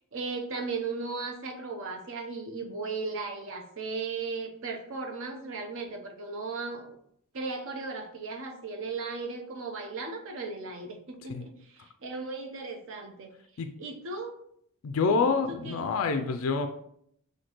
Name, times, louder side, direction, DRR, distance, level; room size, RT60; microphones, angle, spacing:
voice 1, 0.1-6.9 7.3-13.3 13.8-14.3 15.5-15.7, right 4 dB, 60° right, 4 dB, 0.7 m, -36 dB
voice 2, 14.8-16.7, left 4 dB, 65° left, 7 dB, 0.4 m, -27 dB
5.8 x 2.7 x 2.9 m, 0.70 s
head